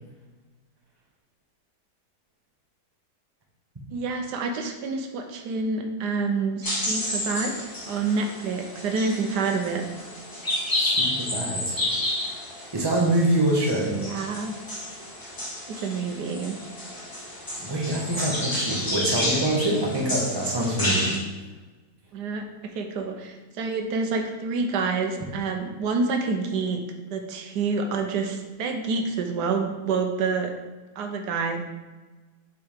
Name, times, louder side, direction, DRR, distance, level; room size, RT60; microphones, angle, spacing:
voice 1, 3.9-9.8 13.8-14.5 15.7-16.6 22.1-22.4 22.7-30.5 31.0-31.6, right 4 dB, 90° right, 5 dB, 1.4 m, -28 dB
sound 1, 6.6-21.2, left 1 dB, 15° left, 1.2 m, -30 dB
voice 2, 10.7-11.8 12.6-14.0 17.6-21.2, right 1 dB, 15° right, -2 dB, 1.1 m, -25 dB
8.0 x 4.6 x 3.6 m, 1.2 s
omnidirectional pair, 1.7 m